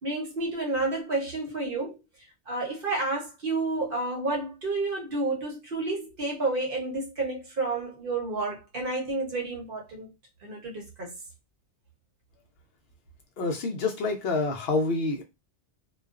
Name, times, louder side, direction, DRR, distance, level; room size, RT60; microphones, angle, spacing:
voice 1, 0.0-2.0 2.5-10.1 10.4-11.1, right 2 dB, 55° right, 1.0 m, -30 dB
voice 2, 13.4-15.2, left 3 dB, 65° left, 0.7 m, -27 dB
2.3 x 2.3 x 2.3 m
omnidirectional pair, 1.2 m